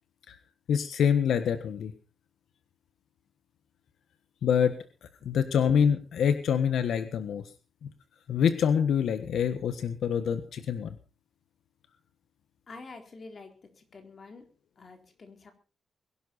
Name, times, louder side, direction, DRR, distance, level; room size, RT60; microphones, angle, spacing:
voice 1, 0.7-1.9 4.4-4.8 5.2-7.4 7.8-7.9 8.3-11.0, left 7 dB, 90° left, 10 dB, 1.5 m, -26 dB
voice 2, 12.7-14.5 14.8-15.5, left 3 dB, 40° left, 5 dB, 3.9 m, -47 dB
22.0 x 11.5 x 4.2 m, 0.35 s
wide cardioid pair, 135°, 0 cm